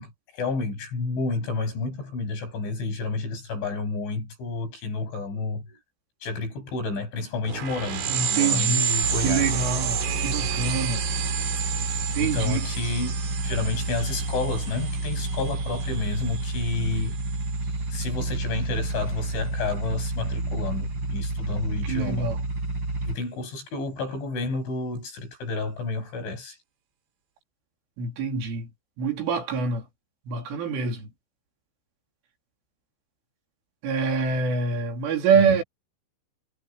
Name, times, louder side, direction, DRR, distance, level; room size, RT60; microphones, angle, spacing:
voice 1, 0.0-5.8 6.2-9.6 12.2-13.2 13.4-17.2 17.9-22.3 23.0-26.6 35.4-35.5, left 3 dB, 70° left, 10.5 m, -30 dB
sound 1, 7.5-17.6, right 8 dB, 60° right, 4.7 m, -31 dB
voice 2, 8.1-8.9 9.2-10.0 10.2-11.0 12.1-12.6 21.8-22.4 28.0-28.7 29.0-29.8 30.3-31.1 33.8-35.6, right 5 dB, 80° right, 6.2 m, -25 dB
sound 2, 9.0-23.1, right 2 dB, 20° right, 6.9 m, -30 dB
omnidirectional pair, 5.6 m